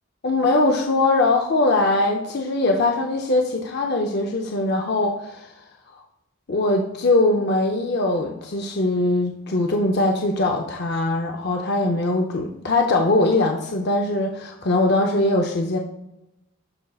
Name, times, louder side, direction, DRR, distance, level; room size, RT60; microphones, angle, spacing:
voice 1, 0.2-5.5 6.5-15.8, left 2 dB, 50° left, 2 dB, 0.6 m, -21 dB
12.5 x 5.3 x 2.4 m, 0.88 s
head